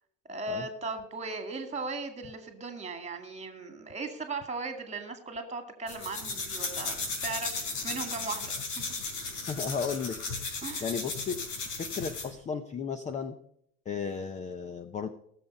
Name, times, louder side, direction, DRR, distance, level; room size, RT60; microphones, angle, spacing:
voice 1, 0.3-7.0 7.2-8.8 10.6-10.9, right 3 dB, 15° right, 7 dB, 2.2 m, -37 dB
sound 1, 5.9-12.3, left 4 dB, 90° left, 4.4 m, -35 dB
voice 2, 9.5-10.2 10.8-11.4 11.8-13.4 13.9-15.1, left 6 dB, 15° left, 12 dB, 0.5 m, -34 dB
18.0 x 7.3 x 5.4 m, 0.70 s
supercardioid pair, 135°, 45 cm